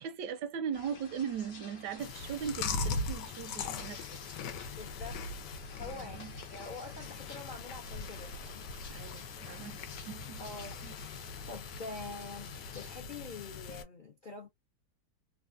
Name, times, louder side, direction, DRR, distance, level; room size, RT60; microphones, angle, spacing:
voice 1, 0.0-4.0 5.8-6.4 8.9-9.8 10.1-10.4 10.8-10.9, right 7 dB, 85° right, 1.2 m, -39 dB
sound 1, 0.7-13.0, left 4 dB, 45° left, 1.0 m, -52 dB
Chewing mastication, 2.0-13.8, left 4 dB, 90° left, 1.3 m, -40 dB
voice 2, 4.8-5.3 5.8-6.2 6.5-9.1 10.4-10.8 11.5-14.5, left 3 dB, 60° left, 0.5 m, -45 dB
3.3 x 2.3 x 2.3 m
omnidirectional pair, 1.8 m